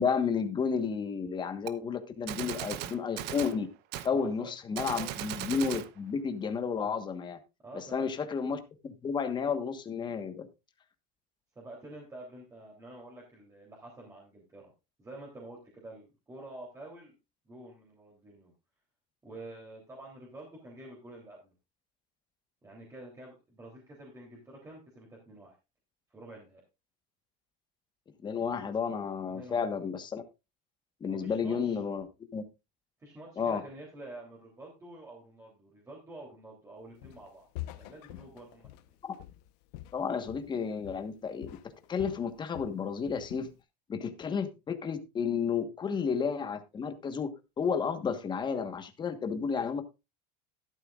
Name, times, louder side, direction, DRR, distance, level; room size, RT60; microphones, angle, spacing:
voice 1, 0.0-3.7 4.0-7.4 7.7-10.5 28.2-30.2 31.0-32.4 33.4-33.6 39.9-41.6 41.9-43.5 43.9-47.3 47.6-49.8, left 6 dB, 20° left, 8 dB, 1.3 m, -32 dB
Gunshot gunfire, 1.7-1.8 2.3-3.6 3.9-4.1 4.7-5.9, right 12 dB, 55° right, 0.9 m, -37 dB
voice 2, 4.1-4.5 5.0-5.1 7.6-8.1 11.5-14.7 15.0-17.1 17.4-18.5 19.2-21.5 22.6-25.5 26.1-26.6 29.3-29.6 31.1-31.8 33.0-37.5 37.8-39.0, right 2 dB, 15° right, -2 dB, 3.2 m, -48 dB
Walk footsteps, 37.0-37.3 37.5-40.6 40.8-41.2 41.4-42.8 43.1-43.5, left 16 dB, 80° left, 1.0 m, -45 dB
12.5 x 11.0 x 2.4 m, 0.26 s
cardioid pair, 150°, 21 cm